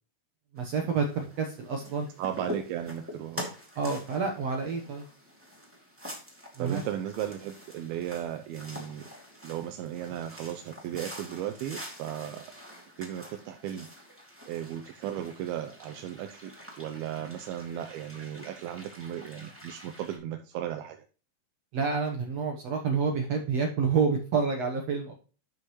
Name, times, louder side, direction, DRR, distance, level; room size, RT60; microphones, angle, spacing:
voice 1, 0.5-2.1 3.8-5.1 6.6-6.8 21.7-25.2, right 5 dB, 65° right, 2 dB, 1.6 m, -28 dB
sound 1, 0.6-20.2, equal, 5° right, 1.8 m, -45 dB
voice 2, 2.2-3.4 6.6-9.0 9.4-12.5 13.0-13.9 14.5-21.0, right 11 dB, 80° right, 6 dB, 2.6 m, -36 dB
12.0 x 5.5 x 3.1 m, 0.37 s
omnidirectional pair, 4.4 m